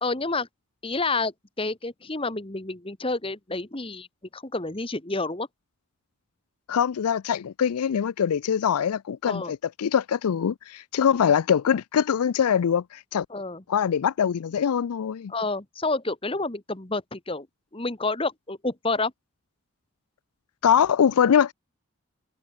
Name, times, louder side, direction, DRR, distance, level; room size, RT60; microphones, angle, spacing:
voice 1, 0.0-0.5 0.8-4.1 4.3-5.5 9.2-9.5 13.3-13.6 15.3-17.5 17.7-19.1, left 3 dB, 25° left, 1.4 m, -29 dB
voice 2, 6.7-13.3 13.7-15.3 20.6-21.5, left 8 dB, 85° left, 0.4 m, -23 dB
head